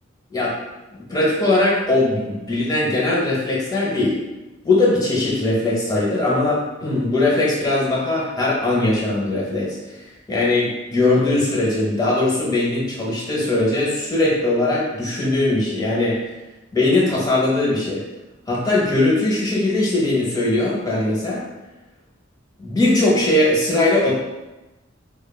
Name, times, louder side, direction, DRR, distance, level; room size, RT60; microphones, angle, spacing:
voice 1, 1.1-4.2 4.6-16.2 16.7-18.0 18.5-21.4 22.6-24.1, left 2 dB, 20° left, -6 dB, 0.7 m, -20 dB
3.1 x 2.1 x 2.2 m, 1.1 s
head